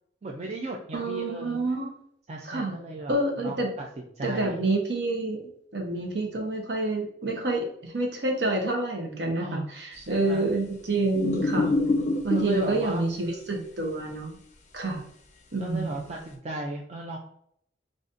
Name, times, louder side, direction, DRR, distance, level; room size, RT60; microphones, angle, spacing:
voice 1, 0.2-1.6 2.3-3.1 3.4-3.9 4.2-4.6 9.3-10.5 12.3-13.1 15.6-17.2, right 2 dB, 35° right, 0 dB, 0.4 m, -36 dB
voice 2, 0.9-1.9 2.5-2.8 3.1-3.7 4.2-5.4 5.7-11.7 12.2-14.3 14.7-15.0 15.5-16.0, right 2 dB, 65° right, 1 dB, 0.8 m, -28 dB
sound 1, 11.1-12.7 14.8-14.9, left 2 dB, 40° left, 0.4 m, -25 dB
3.9 x 2.5 x 2.5 m, 0.69 s
head